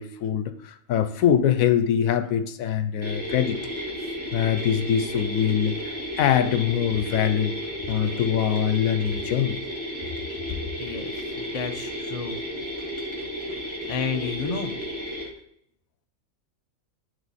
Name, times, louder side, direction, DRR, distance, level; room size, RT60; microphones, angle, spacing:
voice 1, 0.0-3.7 4.3-7.6 7.9-9.6, left 9 dB, 85° left, 10 dB, 1.1 m, -23 dB
sound 1, 3.0-15.2, equal, 20° right, 1.9 m, -33 dB
voice 2, 10.8-12.4 13.9-14.8, left 5 dB, 35° left, 5 dB, 0.7 m, -31 dB
10.0 x 3.7 x 4.2 m, 0.73 s
omnidirectional pair, 1.4 m